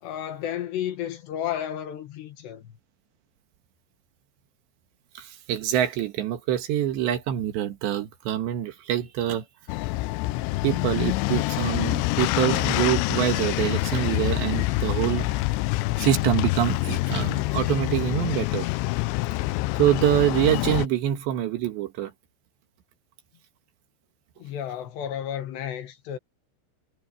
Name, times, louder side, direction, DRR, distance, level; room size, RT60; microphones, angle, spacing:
voice 1, 0.0-2.8 24.4-26.2, left 10 dB, 65° left, 3.3 m, -32 dB
voice 2, 5.2-9.4 10.6-15.3 16.0-18.7 19.8-22.1, right 11 dB, 70° right, 3.6 m, -25 dB
sound 1, 9.7-20.9, left 20 dB, 85° left, 2.5 m, -26 dB
omnidirectional pair, 5.7 m